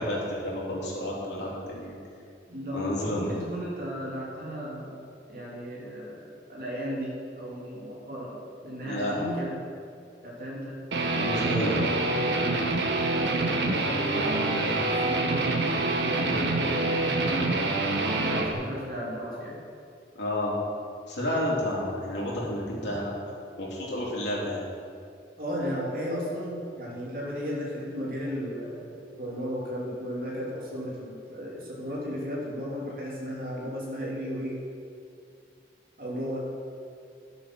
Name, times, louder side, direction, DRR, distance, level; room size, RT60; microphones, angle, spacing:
voice 1, 0.0-2.0 2.7-3.3 8.8-9.1 11.1-11.9 20.1-20.5 21.1-23.1 23.6-24.6, left 1 dB, 90° left, -4 dB, 3.2 m, -30 dB
voice 2, 2.5-8.4 8.6-9.6 10.2-10.8 13.0-17.6 18.1-19.6 25.4-34.6 36.0-36.5, equal, 55° right, -5 dB, 3.0 m, -35 dB
Guitar, 10.9-18.5, right 2 dB, 85° right, 1.2 m, -26 dB
12.0 x 7.2 x 6.2 m, 2.4 s
head